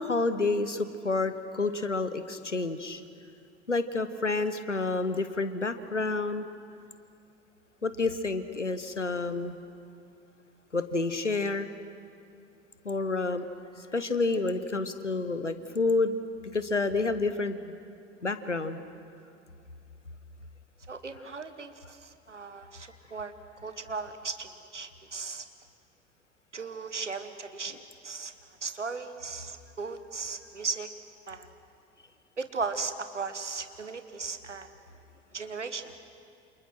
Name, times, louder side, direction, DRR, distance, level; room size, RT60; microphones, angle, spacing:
voice 1, 0.0-3.0 3.7-6.5 7.8-9.6 10.7-11.7 12.8-13.5 13.8-16.2 16.5-17.6 18.2-18.8, left 3 dB, 90° left, 11 dB, 1.2 m, -29 dB
voice 2, 20.9-23.3 23.6-25.5 26.5-28.3 28.6-30.9 31.3-31.5 32.4-34.7 35.3-36.0, right 4 dB, 85° right, 9 dB, 1.4 m, -37 dB
29.0 x 27.5 x 6.2 m, 2.5 s
figure-of-eight pair, 75°, 35 cm